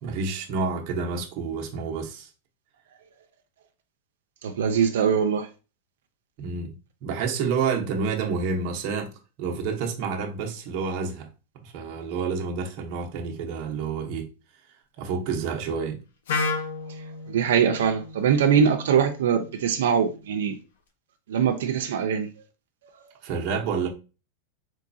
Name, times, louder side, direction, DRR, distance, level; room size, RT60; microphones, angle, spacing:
voice 1, 0.0-2.3 6.4-6.7 7.0-9.1 9.4-11.3 11.6-14.3 15.0-16.0 23.2-23.9, right 5 dB, 45° right, 0.8 m, -29 dB
voice 2, 4.4-5.5 17.3-20.6 21.3-22.3, right 7 dB, 90° right, 0.4 m, -22 dB
Wind instrument woodwind instrument, 16.3-20.2, left 4 dB, 85° left, 0.8 m, -33 dB
3.7 x 3.0 x 2.6 m
supercardioid pair, 145°, 0 cm